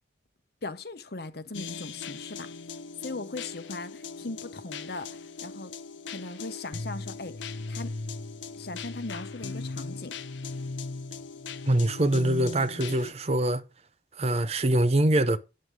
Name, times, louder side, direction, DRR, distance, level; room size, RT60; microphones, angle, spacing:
voice 1, 0.6-2.5 3.0-5.7 6.1-7.9 8.6-10.1, left 3 dB, 55° left, 1.0 m, -39 dB
sound 1, 1.5-13.1, left 4 dB, 80° left, 0.7 m, -38 dB
voice 2, 11.7-13.6 14.2-15.4, right 1 dB, 35° right, 0.6 m, -24 dB
9.6 x 7.5 x 4.9 m
head